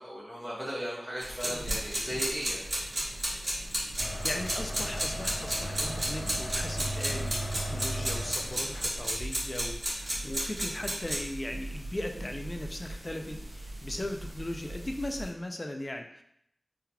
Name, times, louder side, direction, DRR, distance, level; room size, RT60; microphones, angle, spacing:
voice 1, 0.0-2.6, equal, 20° right, -9 dB, 1.1 m, -36 dB
sound 1, 1.2-15.3, right 1 dB, 50° right, 1.3 m, -34 dB
sound 2, 4.0-9.1, equal, 85° left, 0.9 m, -36 dB
voice 2, 4.2-16.2, left 1 dB, 35° left, 4 dB, 0.3 m, -38 dB
3.7 x 2.9 x 2.2 m, 0.73 s
wide cardioid pair, 55°, 0 cm